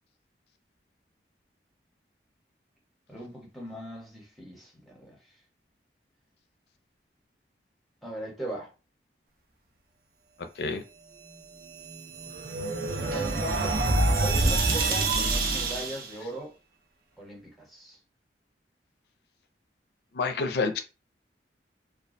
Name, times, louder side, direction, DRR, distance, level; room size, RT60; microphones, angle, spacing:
voice 1, 3.1-5.2 8.0-8.7 12.9-16.5 17.2-18.0, right 1 dB, ahead, 0.8 m, -39 dB
voice 2, 10.4-10.8 20.1-20.8, left 4 dB, 70° left, 0.4 m, -29 dB
sound 1, 11.6-16.1, right 2 dB, 55° right, 0.5 m, -26 dB
2.3 x 2.1 x 2.5 m
head